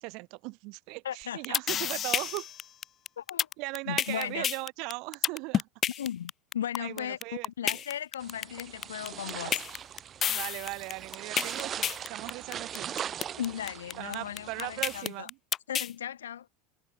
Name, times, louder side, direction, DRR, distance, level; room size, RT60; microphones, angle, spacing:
voice 1, 0.0-2.5 3.6-5.7 6.8-7.8 10.3-12.9 14.0-15.4, right 27 dB, 60° right, 1.1 m, -38 dB
voice 2, 1.0-1.6 3.2-3.5 3.9-4.5 6.0-9.6 13.4-15.3 15.7-16.5, left 10 dB, 90° left, 0.9 m, -36 dB
sound 1, 1.2-15.9, left 9 dB, 35° left, 0.3 m, -30 dB
sound 2, 8.2-15.0, right 9 dB, 35° right, 0.8 m, -40 dB
hypercardioid pair, 95°, 0 cm